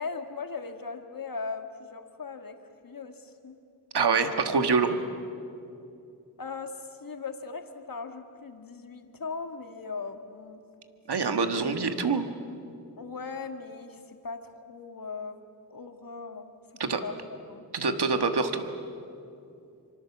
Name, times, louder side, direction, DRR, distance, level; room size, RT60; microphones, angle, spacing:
voice 1, 0.0-2.6 2.8-3.6 4.2-4.4 6.4-10.6 13.0-15.4 15.7-16.5 17.0-17.7, left 4 dB, 55° left, 6 dB, 1.9 m, -39 dB
voice 2, 3.9-5.0 11.1-12.3 16.8-17.0 17.7-18.7, right 4 dB, 80° right, 7 dB, 1.7 m, -25 dB
25.5 x 25.0 x 7.3 m, 2.6 s
wide cardioid pair, 60°, 40 cm